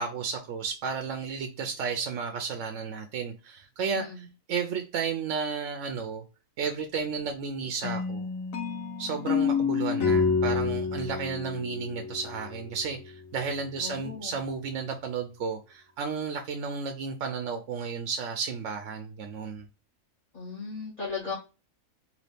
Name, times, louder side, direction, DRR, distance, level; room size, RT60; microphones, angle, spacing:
voice 1, 0.0-6.2 6.6-8.3 9.0-19.7, right 5 dB, 70° right, 0.9 m, -33 dB
sound 1, 7.8-12.7, left 5 dB, 80° left, 1.2 m, -28 dB
voice 2, 13.8-14.3 20.3-21.4, left 4 dB, 30° left, 1.6 m, -36 dB
4.0 x 2.8 x 3.3 m
omnidirectional pair, 1.4 m